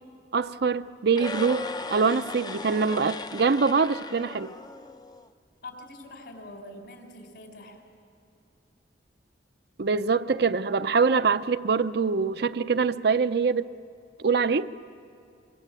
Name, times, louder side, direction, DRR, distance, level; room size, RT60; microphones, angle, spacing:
voice 1, 0.3-4.5 9.8-13.7 14.2-14.7, right 5 dB, 60° right, 0.6 m, -24 dB
sound 1, 1.1-5.3, left 3 dB, 20° left, 0.6 m, -37 dB
voice 2, 5.6-7.8, left 2 dB, 65° left, 4.3 m, -44 dB
25.5 x 23.5 x 8.2 m
head